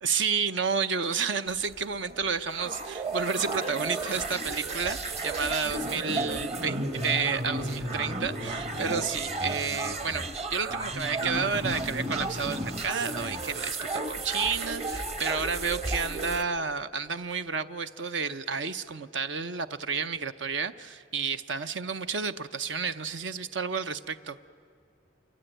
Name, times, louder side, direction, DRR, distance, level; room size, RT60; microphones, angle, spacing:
voice 1, 0.0-24.4, right 5 dB, 70° right, 11 dB, 0.7 m, -31 dB
sound 1, 1.5-16.4, right 2 dB, 35° right, 1.2 m, -33 dB
27.0 x 23.5 x 9.1 m, 2.4 s
head